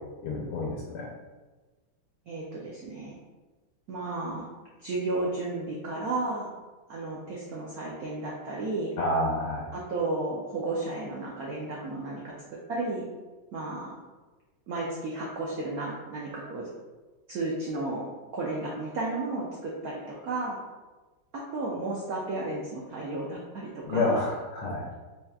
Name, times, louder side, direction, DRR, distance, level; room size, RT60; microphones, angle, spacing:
voice 1, 0.2-1.1 9.0-9.7 23.8-24.9, left 2 dB, 90° left, -3 dB, 1.5 m, -28 dB
voice 2, 2.3-3.2 3.9-4.5 4.8-6.5 6.9-8.9 9.7-12.3 12.7-13.1 13.5-13.9 14.7-16.7 17.3-18.0 18.3-20.6 21.3-24.2, right 2 dB, 90° right, -4 dB, 0.8 m, -33 dB
4.1 x 2.3 x 3.3 m, 1.2 s
omnidirectional pair, 2.3 m